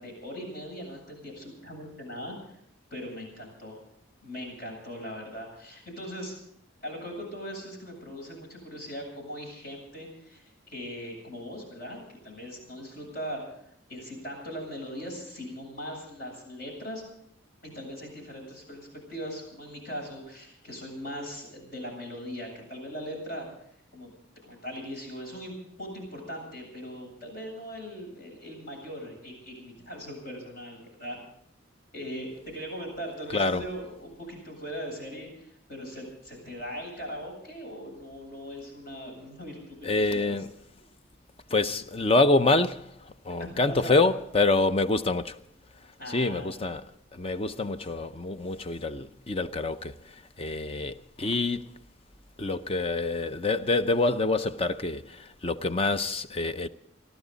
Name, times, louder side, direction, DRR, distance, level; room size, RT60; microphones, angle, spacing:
voice 1, 0.0-2.5 2.9-3.8 4.2-6.3 6.8-13.5 13.9-17.0 17.6-23.5 23.9-24.1 24.4-31.2 31.9-40.4 43.4-44.0 46.0-46.5, equal, 50° left, 7.9 m, -40 dB
voice 2, 33.3-33.6 39.8-40.5 41.5-45.4 46.1-51.7 52.4-56.7, left 2 dB, 30° left, 0.6 m, -26 dB
29.5 x 12.0 x 4.0 m
head